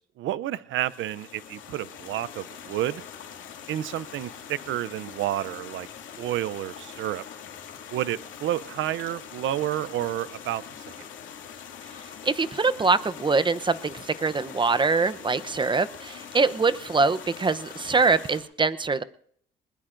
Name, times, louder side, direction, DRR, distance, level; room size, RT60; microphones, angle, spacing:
voice 1, 0.0-3.0 3.7-5.9 6.2-7.2 7.9-10.6, right 13 dB, 75° right, 17 dB, 0.6 m, -30 dB
sound 1, 0.8-18.4, left 8 dB, 75° left, 2.4 m, -43 dB
voice 2, 12.2-19.0, right 4 dB, 25° right, 13 dB, 0.7 m, -24 dB
20.5 x 20.5 x 2.6 m, 0.64 s
cardioid pair, 90°, 20 cm